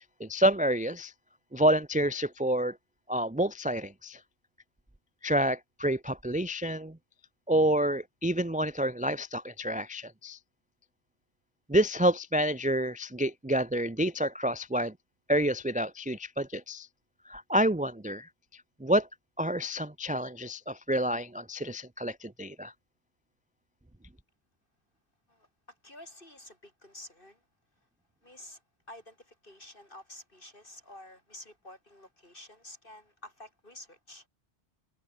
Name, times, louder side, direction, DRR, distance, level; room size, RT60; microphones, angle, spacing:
voice 1, 0.2-1.1 1.5-2.8 3.1-4.2 5.2-7.0 7.5-10.4 11.7-14.9 15.3-16.9 17.3-19.1 19.4-22.7, right 1 dB, 10° right, 0.7 m, -28 dB
voice 2, 25.3-27.4 28.2-28.6 28.9-34.3, left 1 dB, 50° left, 7.4 m, -50 dB
omnidirectional pair, 1.2 m